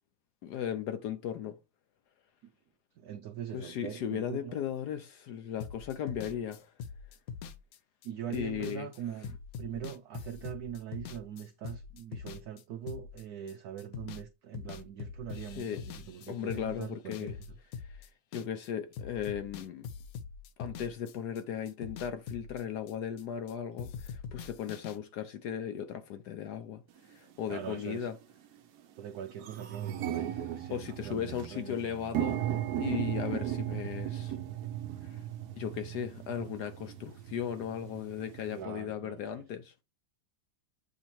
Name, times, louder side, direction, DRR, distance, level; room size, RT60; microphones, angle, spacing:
voice 1, 0.4-1.6 3.5-6.7 8.3-8.9 15.6-15.8 16.3-17.4 17.9-18.1 18.3-19.9 20.6-26.8 27.1-28.1 30.7-32.4 32.8-34.4 35.0-35.2 35.6-39.7, left 9 dB, 70° left, 1.0 m, -37 dB
voice 2, 2.9-4.6 8.0-17.6 27.5-28.1 29.0-31.9 38.5-39.5, right 9 dB, 90° right, 0.8 m, -42 dB
sound 1, 5.6-14.3 14.5-18.7 18.9-23.5 23.8-25.0, left 6 dB, 90° left, 0.7 m, -43 dB
sound 2, 27.0-27.1 27.9-28.1 28.5-28.6 28.9-38.6, right 11 dB, 65° right, 1.0 m, -36 dB
7.8 x 2.9 x 4.3 m
omnidirectional pair, 2.2 m